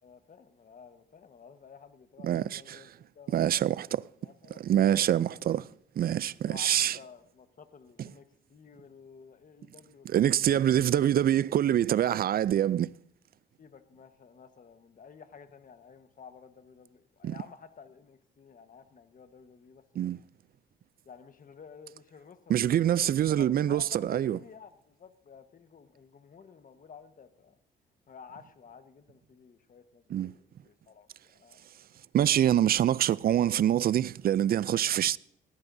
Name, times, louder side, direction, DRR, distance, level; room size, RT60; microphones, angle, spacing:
voice 1, 0.0-3.8 4.2-5.4 6.5-10.8 13.6-20.1 21.0-27.6 28.1-31.6 34.7-35.2, left 6 dB, 45° left, 1.3 m, -52 dB
voice 2, 2.2-2.8 3.3-3.9 4.6-5.6 6.0-7.0 10.1-12.9 17.2-17.3 20.0-20.2 22.5-24.4 30.1-30.3 32.1-35.2, right 11 dB, 50° right, 0.4 m, -25 dB
18.5 x 15.0 x 2.7 m
cardioid pair, 90°, 20 cm